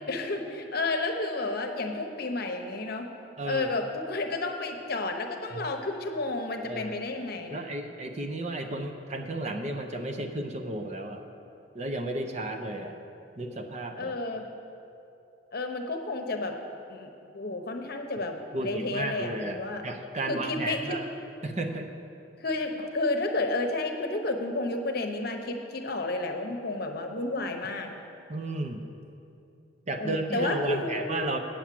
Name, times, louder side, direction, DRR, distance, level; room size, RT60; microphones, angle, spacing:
voice 1, 0.1-3.1 3.4-7.6 14.0-14.5 15.5-16.6 16.9-19.8 20.2-21.0 22.4-28.0 30.0-31.1, left 2 dB, 55° left, 4 dB, 0.9 m, -31 dB
voice 2, 3.4-3.7 5.5-5.6 6.6-6.9 7.5-11.2 11.7-13.0 13.4-14.1 18.5-21.1 21.4-21.9 28.3-28.8 29.9-31.4, right 2 dB, 35° right, 5 dB, 0.6 m, -33 dB
8.7 x 7.2 x 7.5 m, 2.7 s
head